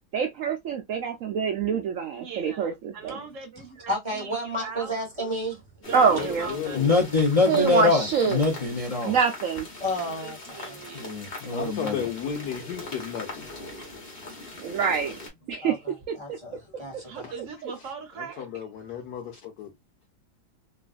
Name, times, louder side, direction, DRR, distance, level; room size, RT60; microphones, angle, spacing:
voice 1, 0.1-3.2 5.9-6.5 7.5-8.4 9.0-9.7 14.6-15.1 15.5-15.8 16.1-16.2 17.6-17.7, right 6 dB, 70° right, 0.7 m, -25 dB
voice 2, 2.1-4.9 5.9-6.8 7.7-8.5 10.0-11.1 17.0-18.5, right 5 dB, 55° right, 1.0 m, -40 dB
voice 3, 3.9-5.6 9.8-10.8 15.6-17.3, equal, 20° right, 1.3 m, -32 dB
sound 1, 5.8-15.3, left 2 dB, 35° left, 1.2 m, -41 dB
voice 4, 6.0-7.0 11.5-13.5 17.2-17.3 18.2-19.7, left 8 dB, 75° left, 1.3 m, -34 dB
voice 5, 6.7-9.2 10.9-12.1, left 3 dB, 60° left, 0.3 m, -23 dB
3.1 x 2.5 x 2.4 m
omnidirectional pair, 1.9 m